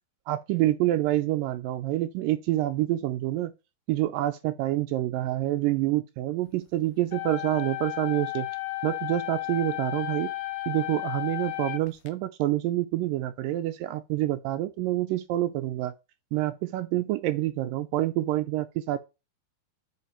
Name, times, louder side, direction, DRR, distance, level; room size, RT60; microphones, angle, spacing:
voice 1, 0.3-3.5 3.9-8.5 8.8-10.3 10.7-15.9 16.3-19.0, right 15 dB, 80° right, 2.0 m, -27 dB
sound 1, 7.1-12.1, left 18 dB, 85° left, 2.8 m, -33 dB
8.5 x 4.1 x 4.4 m
omnidirectional pair, 4.4 m